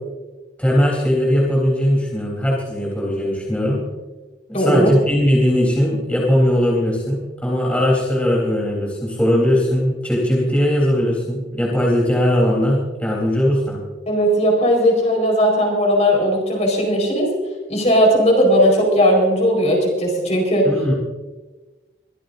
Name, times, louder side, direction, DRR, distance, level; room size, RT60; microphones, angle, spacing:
voice 1, 0.6-3.8 4.5-13.8 20.7-20.9, equal, 5° left, -4 dB, 3.7 m, -19 dB
voice 2, 4.5-4.9 14.1-17.3 17.7-20.7, equal, 40° left, 0 dB, 4.7 m, -17 dB
23.5 x 15.0 x 2.7 m, 1.2 s
head